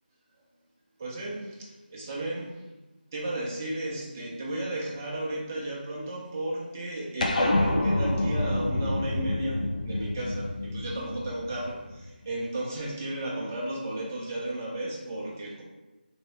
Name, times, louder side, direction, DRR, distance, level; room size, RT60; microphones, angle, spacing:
voice 1, 1.0-2.6 3.1-15.6, right 1 dB, 15° right, -5 dB, 0.4 m, -34 dB
sound 1, 7.2-11.9, left 1 dB, 45° left, 0.4 m, -27 dB
3.0 x 2.6 x 3.0 m, 1.1 s
figure-of-eight pair, 170°, 5 cm